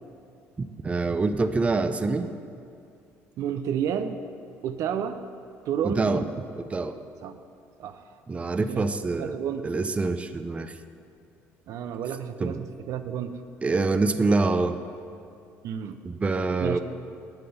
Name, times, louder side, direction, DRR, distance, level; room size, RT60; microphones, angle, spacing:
voice 1, 0.6-2.3 5.8-6.2 6.6-7.0 8.3-9.4 9.6-10.8 12.4-12.6 13.6-14.8 16.0-16.8, right 3 dB, 20° right, 9 dB, 0.5 m, -25 dB
voice 2, 3.4-4.2 4.6-5.2 5.7-6.2 7.2-7.4 7.8-8.0 8.7-9.7 11.7-13.3 15.6-16.0 16.6-16.8, right 8 dB, 70° right, 9 dB, 0.6 m, -31 dB
8.8 x 7.8 x 6.9 m, 2.4 s
cardioid pair, 95°, 6 cm